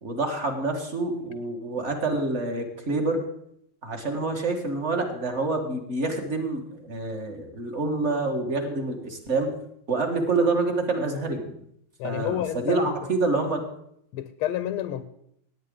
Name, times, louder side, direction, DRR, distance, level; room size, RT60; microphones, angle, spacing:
voice 1, 0.0-3.2 3.8-9.5 9.9-11.5 12.0-13.6, right 3 dB, 35° right, 4 dB, 1.7 m, -27 dB
voice 2, 12.0-12.9 14.1-15.0, left 12 dB, 85° left, 12 dB, 1.5 m, -29 dB
17.0 x 9.3 x 3.8 m, 0.73 s
omnidirectional pair, 2.4 m